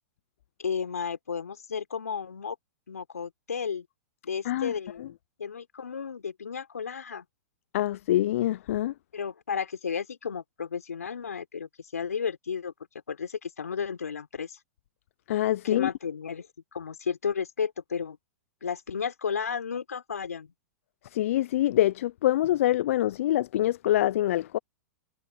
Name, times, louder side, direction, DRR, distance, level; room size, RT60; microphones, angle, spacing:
voice 1, 0.6-2.6 2.9-3.9 4.2-7.3 9.1-12.7 13.1-14.6 15.6-16.5 16.7-18.2 18.6-20.5, left 6 dB, 85° left, 3.6 m, -33 dB
voice 2, 7.7-8.9 15.3-15.9 21.1-24.6, left 13 dB, 60° left, 0.6 m, -25 dB
hypercardioid pair, 110°, 8 cm